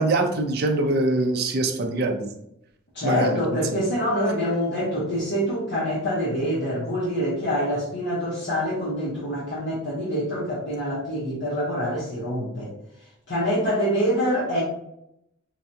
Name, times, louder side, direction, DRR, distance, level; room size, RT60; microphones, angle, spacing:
voice 1, 0.0-2.3 3.0-3.3, right 2 dB, 50° right, 4 dB, 0.4 m, -23 dB
voice 2, 2.9-12.7 13.3-14.6, equal, 55° left, -8 dB, 0.9 m, -25 dB
4.5 x 2.2 x 2.6 m, 0.80 s
head